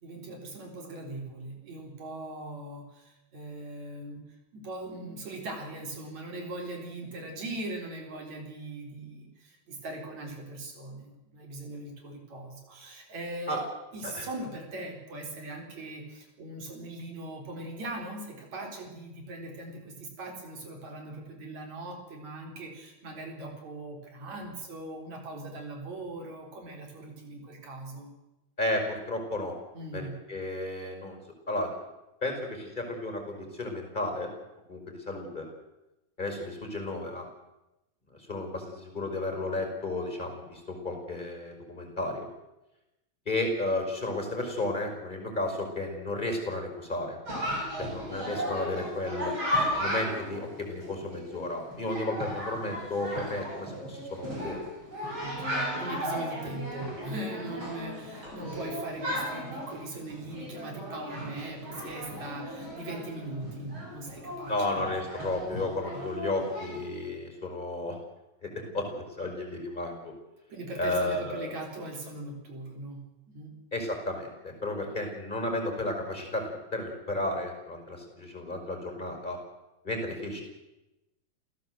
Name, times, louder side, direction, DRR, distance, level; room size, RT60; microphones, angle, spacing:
voice 1, 0.0-4.2 4.5-13.6 13.9-28.1 29.7-30.2 55.2-64.8 65.9-66.0 70.5-73.6, right 2 dB, 70° right, 2 dB, 5.7 m, -40 dB
voice 2, 28.6-29.5 29.9-31.2 31.5-31.7 32.2-34.3 34.7-35.5 36.2-37.3 38.3-42.3 43.3-47.2 47.8-49.3 49.8-54.6 64.5-68.0 68.4-70.1 70.8-71.5 73.7-79.4 79.8-80.4, left 2 dB, 15° left, 4 dB, 5.5 m, -33 dB
Chatter, 47.3-66.9, equal, 40° right, 8.1 m, -35 dB
28.0 x 16.0 x 8.0 m, 0.98 s
omnidirectional pair, 3.3 m